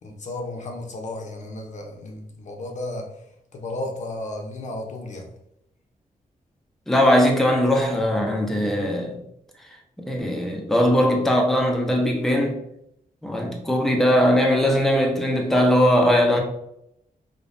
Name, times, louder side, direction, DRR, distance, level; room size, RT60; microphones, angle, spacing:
voice 1, 0.0-3.1 3.5-5.3, left 2 dB, 55° left, 0.7 m, -33 dB
voice 2, 6.9-9.2 10.0-12.6 13.2-16.4, equal, ahead, 0.5 m, -20 dB
5.1 x 2.2 x 2.6 m
wide cardioid pair, 180°, 15 cm